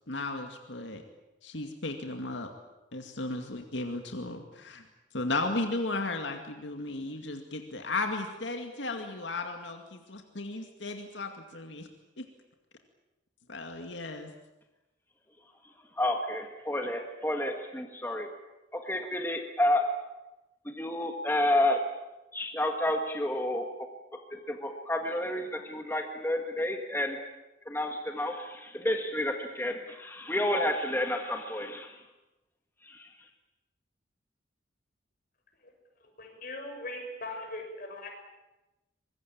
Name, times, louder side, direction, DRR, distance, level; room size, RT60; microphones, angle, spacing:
voice 1, 0.1-1.0 1.4-2.5 2.9-4.9 5.1-11.9 12.2-12.3 13.5-14.3, left 2 dB, 75° left, 5 dB, 2.3 m, -35 dB
voice 2, 16.0-18.3 18.7-19.9 20.7-21.8 22.3-23.7 24.3-27.2 27.7-32.0 32.8-33.1, left 1 dB, 10° left, 4 dB, 1.7 m, -30 dB
voice 3, 36.2-38.1, left 2 dB, 50° left, 3 dB, 6.8 m, -40 dB
25.0 x 21.0 x 8.8 m, 1.0 s
head